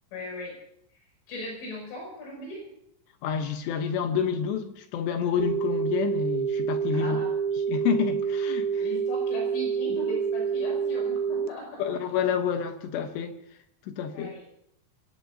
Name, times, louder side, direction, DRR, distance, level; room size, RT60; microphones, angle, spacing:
voice 1, 0.1-0.5 1.3-2.7 6.9-7.3 8.8-11.8 14.1-14.4, equal, 90° left, 9.5 m, -38 dB
voice 2, 3.2-7.2 7.7-8.8 11.8-13.4 13.9-14.3, left 8 dB, 70° left, 2.9 m, -28 dB
sound 1, 5.4-11.5, right 6 dB, 90° right, 2.1 m, -27 dB
26.0 x 17.5 x 2.8 m
omnidirectional pair, 5.7 m